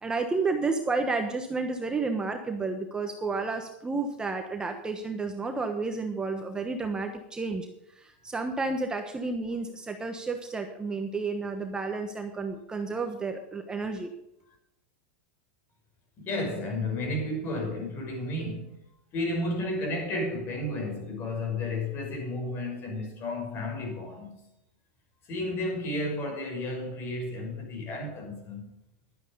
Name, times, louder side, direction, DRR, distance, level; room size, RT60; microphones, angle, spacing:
voice 1, 0.0-14.1, right 3 dB, 15° right, 1.1 m, -31 dB
voice 2, 16.2-18.8 19.1-24.3 25.2-28.7, left 1 dB, 40° left, 5.7 m, -32 dB
12.0 x 9.7 x 5.3 m
supercardioid pair, 125°, 6 cm